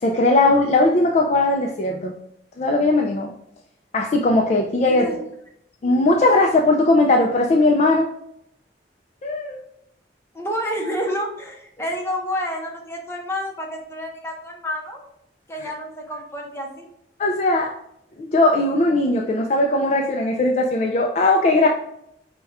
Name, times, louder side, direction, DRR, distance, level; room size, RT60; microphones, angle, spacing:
voice 1, 0.0-2.1 2.6-3.3 3.9-5.1 5.8-8.1 9.2-9.6 15.6-15.7 17.2-17.7 18.2-21.7, left 2 dB, 40° left, 1 dB, 0.3 m, -18 dB
voice 2, 4.8-5.2 10.3-15.1 15.5-16.9, equal, 15° left, 0 dB, 0.7 m, -29 dB
5.3 x 2.2 x 3.4 m, 0.75 s
head